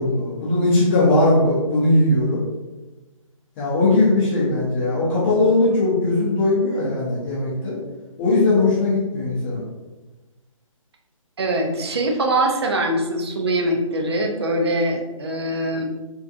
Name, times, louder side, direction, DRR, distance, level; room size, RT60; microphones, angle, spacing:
voice 1, 0.0-2.4 3.6-7.8 8.2-9.6, left 2 dB, 20° left, -10 dB, 1.1 m, -19 dB
voice 2, 11.4-15.8, right 1 dB, 50° right, 2 dB, 0.6 m, -23 dB
3.8 x 2.4 x 2.5 m, 1.1 s
figure-of-eight pair, 140°, 18 cm